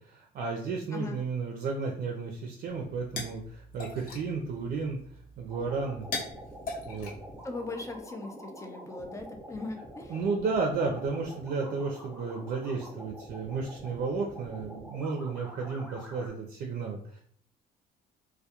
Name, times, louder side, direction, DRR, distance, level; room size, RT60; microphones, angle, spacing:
voice 1, 0.0-5.0 5.4-6.1 6.9-7.1 10.1-17.2, right 4 dB, 55° right, 2 dB, 0.4 m, -33 dB
sound 1, 2.7-8.0, left 3 dB, 55° left, 0.8 m, -42 dB
sound 2, 5.5-16.3, equal, 5° right, 0.8 m, -46 dB
voice 2, 7.4-10.1, left 3 dB, 15° left, 4 dB, 0.4 m, -39 dB
2.2 x 2.1 x 2.8 m, 0.63 s
cardioid pair, 110°, 17 cm